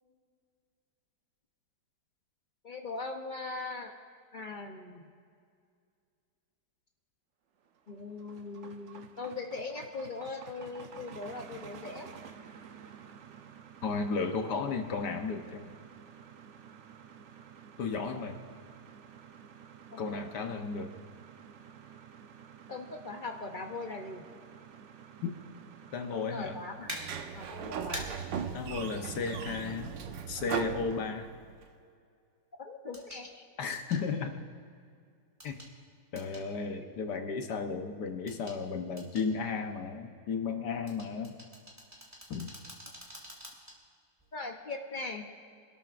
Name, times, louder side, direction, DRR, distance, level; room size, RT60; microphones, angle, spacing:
voice 1, 2.6-4.0 4.3-5.1 7.9-12.1 19.9-20.2 22.7-24.3 26.1-27.0 27.3-28.1 32.6-33.4 44.3-45.3, left 3 dB, 50° left, 3 dB, 0.5 m, -40 dB
sound 1, 7.7-27.1, right 7 dB, 60° right, 0.8 m, -52 dB
voice 2, 13.8-15.7 17.8-18.4 20.0-20.9 25.9-26.6 28.5-30.0 30.3-31.3 33.6-34.4 35.4-35.6 36.1-41.4 42.3-42.5, left 5 dB, 65° left, 5 dB, 1.5 m, -34 dB
Sliding door, 26.8-31.6, right 8 dB, 80° right, 1.4 m, -38 dB
sound 2, 26.9-27.0 27.9-28.0 30.0-30.1 32.9-33.2 33.7-34.0 35.4-35.7 36.2-36.5 38.3-38.6 39.0-39.3 40.9-43.8 44.2-44.3, equal, 10° right, 2.3 m, -44 dB
26.0 x 12.5 x 2.5 m, 2.3 s
omnidirectional pair, 2.0 m